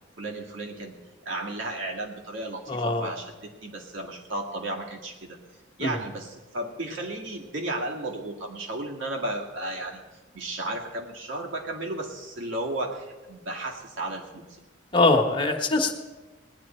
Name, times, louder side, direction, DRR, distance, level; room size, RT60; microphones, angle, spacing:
voice 1, 0.2-0.9 1.2-5.4 5.8-14.6, right 1 dB, 75° right, -1 dB, 2.0 m, -34 dB
voice 2, 2.7-3.1 5.8-5.9 14.9-16.0, left 3 dB, 25° left, 2 dB, 1.3 m, -22 dB
19.0 x 10.5 x 4.4 m, 1.3 s
head